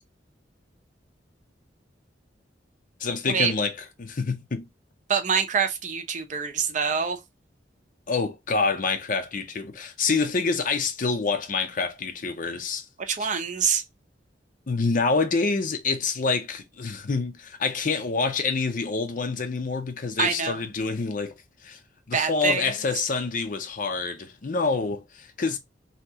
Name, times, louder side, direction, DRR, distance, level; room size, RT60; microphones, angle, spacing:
voice 1, 3.0-4.7 8.1-12.8 14.7-21.4 21.6-21.8 22.1-25.6, left 4 dB, 45° left, 0.6 m, -27 dB
voice 2, 5.1-7.2 13.0-13.8 20.2-20.6 22.1-22.6, right 6 dB, 45° right, 0.6 m, -25 dB
2.9 x 2.8 x 3.5 m
head